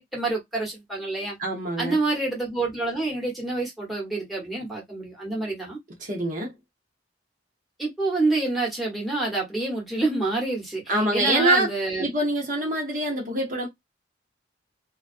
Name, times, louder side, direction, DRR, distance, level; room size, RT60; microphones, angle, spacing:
voice 1, 0.0-1.4 1.8-5.8 7.8-12.1, right 2 dB, ahead, 1.0 m, -27 dB
voice 2, 1.4-2.0 6.0-6.5 10.9-11.7 12.0-13.7, right 1 dB, 45° right, 0.8 m, -24 dB
2.3 x 2.3 x 2.4 m
head